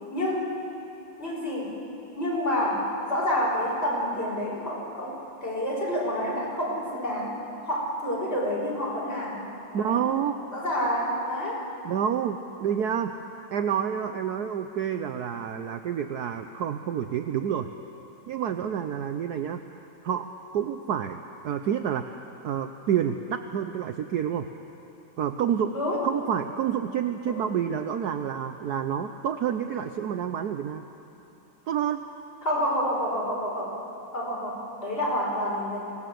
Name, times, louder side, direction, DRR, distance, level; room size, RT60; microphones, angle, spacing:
voice 1, 0.1-0.5 1.2-1.8 2.1-9.4 9.7-10.0 10.5-11.6 25.7-26.0 27.3-27.4 32.4-33.7 34.1-35.9, equal, 30° left, -5 dB, 5.5 m, -28 dB
voice 2, 9.7-10.4 11.8-13.1 13.5-17.7 18.3-20.3 20.5-24.5 25.2-25.7 26.0-30.8 31.7-32.0, right 8 dB, 65° right, 8 dB, 1.0 m, -28 dB
25.5 x 17.5 x 7.7 m, 3.0 s
omnidirectional pair, 2.2 m